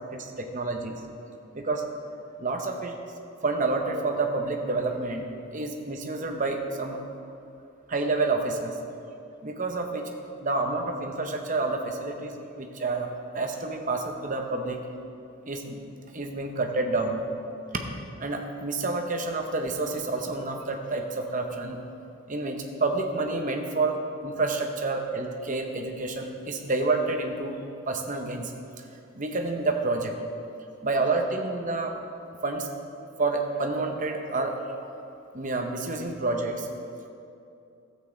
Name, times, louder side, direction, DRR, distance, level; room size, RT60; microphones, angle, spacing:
voice 1, 0.1-1.0 1.5-1.8 2.4-2.9 3.4-5.3 5.5-7.0 7.9-8.8 9.4-14.8 15.5-15.8 16.1-17.2 17.7-17.9 18.2-21.8 22.3-27.6 27.9-28.5 29.2-30.2 30.8-32.0 32.4-32.7 33.2-34.6 35.3-36.7, right 3 dB, 35° right, 3 dB, 0.8 m, -29 dB
12.5 x 8.3 x 3.9 m, 2.7 s
head